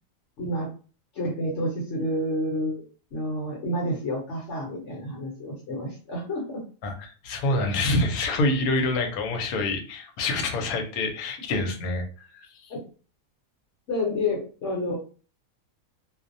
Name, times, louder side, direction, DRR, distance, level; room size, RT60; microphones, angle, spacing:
voice 1, 1.1-2.8 3.1-6.6 7.4-7.6 12.7-12.8 13.9-15.0, left 1 dB, 60° left, -3 dB, 1.0 m, -29 dB
voice 2, 6.8-12.0 12.3-12.7, left 2 dB, 80° left, 4 dB, 1.1 m, -26 dB
2.5 x 2.1 x 2.5 m, 0.38 s
omnidirectional pair, 1.5 m